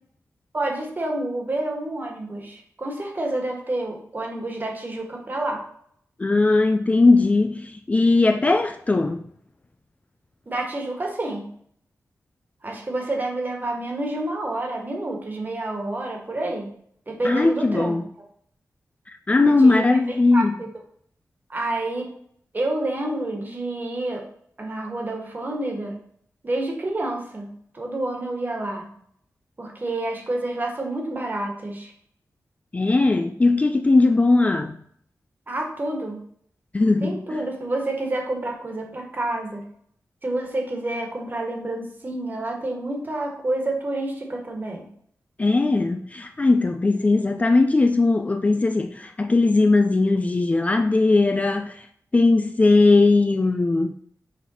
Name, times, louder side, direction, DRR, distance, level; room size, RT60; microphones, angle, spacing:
voice 1, 0.5-5.6 10.5-11.5 12.6-16.7 17.1-18.0 19.6-19.8 20.3-20.7 21.5-22.1 22.5-24.2 24.6-26.0 26.4-27.5 27.7-28.9 29.6-31.9 35.5-36.2 37.0-39.6 40.2-44.9, right 2 dB, 35° right, 1.5 m, -28 dB
voice 2, 6.2-9.3 17.2-18.0 19.1-20.5 32.7-34.8 36.7-37.2 45.4-51.9 52.1-53.9, left 3 dB, 25° left, 0.3 m, -19 dB
6.2 x 4.0 x 4.3 m
wide cardioid pair, 115°, 6 cm